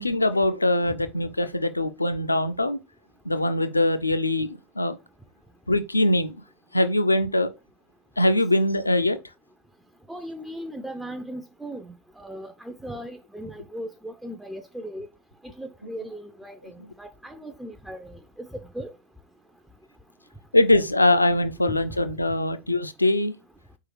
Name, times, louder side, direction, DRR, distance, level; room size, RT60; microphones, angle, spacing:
voice 1, 0.0-2.8 3.3-5.0 5.7-6.4 6.7-7.5 8.2-9.2 20.5-23.3, left 1 dB, 80° left, 0.5 m, -22 dB
voice 2, 10.1-11.9 12.2-15.1 15.6-16.7 17.0-18.1 18.4-18.5 18.7-18.9, right 1 dB, 5° right, 0.4 m, -37 dB
4.6 x 3.6 x 3.2 m
figure-of-eight pair, 90°, 0 cm